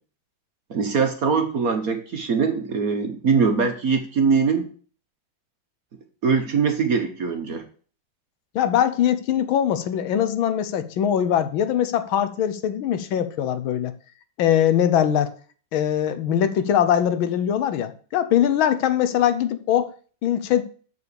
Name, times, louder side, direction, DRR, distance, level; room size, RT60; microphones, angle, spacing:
voice 1, 0.7-4.7 6.2-7.6, right 5 dB, 50° right, 1.3 m, -22 dB
voice 2, 8.5-13.9 14.4-15.3 15.7-19.9 20.2-20.6, left 10 dB, 75° left, 1.5 m, -22 dB
6.9 x 6.8 x 6.8 m
omnidirectional pair, 2.3 m